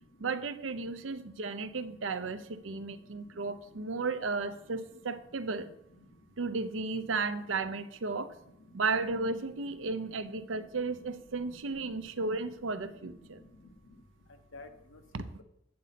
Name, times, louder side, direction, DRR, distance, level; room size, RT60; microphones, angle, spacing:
voice 1, 0.2-5.7 6.4-8.3 8.7-13.4 15.1-15.2, right 3 dB, 85° right, 11 dB, 0.7 m, -34 dB
voice 2, 11.8-12.3 13.0-13.1 13.6-13.7 14.5-15.4, left 2 dB, 80° left, 6 dB, 1.0 m, -52 dB
8.6 x 4.0 x 5.8 m, 0.80 s
head